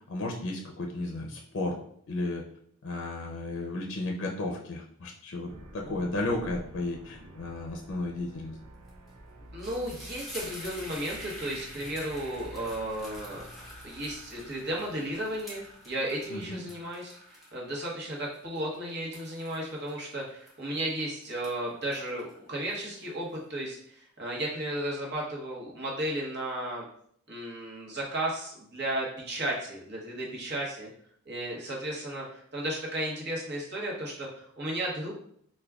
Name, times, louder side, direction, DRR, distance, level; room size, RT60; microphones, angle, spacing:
voice 1, 0.1-1.8 2.1-2.4 2.8-8.5 16.3-16.6, left 2 dB, 60° left, 1 dB, 0.5 m, -33 dB
sound 1, 5.5-16.7, right 1 dB, 85° right, 0.6 m, -50 dB
sound 2, 8.9-9.1 9.4-20.9 21.3-23.2, equal, ahead, 0.7 m, -47 dB
voice 2, 9.5-13.4 13.8-17.1 17.5-26.9 27.3-30.9 31.2-35.1, right 1 dB, 50° right, -2 dB, 0.9 m, -34 dB
4.7 x 2.2 x 2.3 m, 0.65 s
head